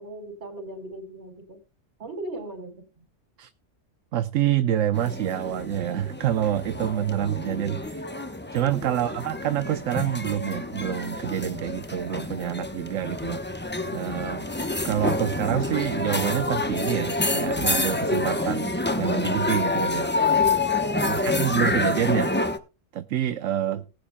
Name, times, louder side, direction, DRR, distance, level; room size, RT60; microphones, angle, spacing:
voice 1, 0.0-1.6 2.0-3.1 8.8-9.2 13.8-14.4 20.9-21.3 23.7-23.9, right 2 dB, 60° right, 4.4 m, -40 dB
voice 2, 4.1-8.1 8.5-13.4 13.9-14.5 14.8-20.4 21.1-22.4 22.9-23.8, right 11 dB, 75° right, 1.1 m, -27 dB
sound 1, 4.9-22.6, left 2 dB, 10° left, 0.8 m, -27 dB
19.5 x 10.0 x 2.3 m
omnidirectional pair, 1.3 m